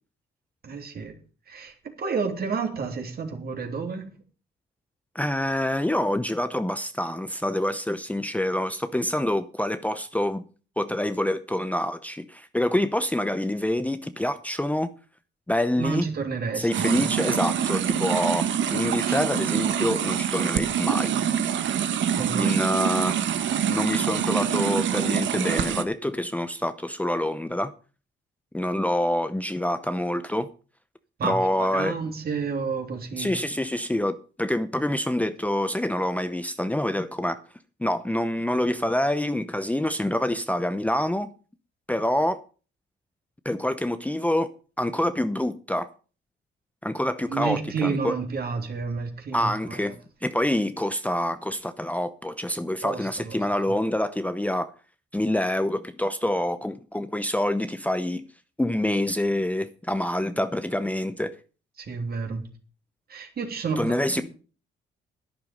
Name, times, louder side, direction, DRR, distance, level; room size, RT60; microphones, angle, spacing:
voice 1, 0.6-1.1 1.5-4.1 15.8-17.1 19.1-19.2 22.1-22.5 31.2-33.3 47.3-49.9 52.8-53.4 53.7-53.8 61.8-62.4 63.1-63.8 64.1-64.2, right 5 dB, 50° right, 3.4 m, -30 dB
voice 2, 5.1-10.4 10.8-14.9 15.5-16.1 16.5-21.1 22.4-23.2 23.7-27.7 28.5-30.5 31.2-31.9 33.2-37.4 37.8-41.3 41.9-42.4 43.4-44.5 44.8-45.9 46.8-48.1 49.3-54.7 55.1-58.2 58.6-61.4 63.8-64.2, left 1 dB, 5° left, 0.8 m, -26 dB
sound 1, 16.7-25.8, right 9 dB, 70° right, 1.3 m, -25 dB
11.5 x 10.0 x 5.3 m
cardioid pair, 90°, 20 cm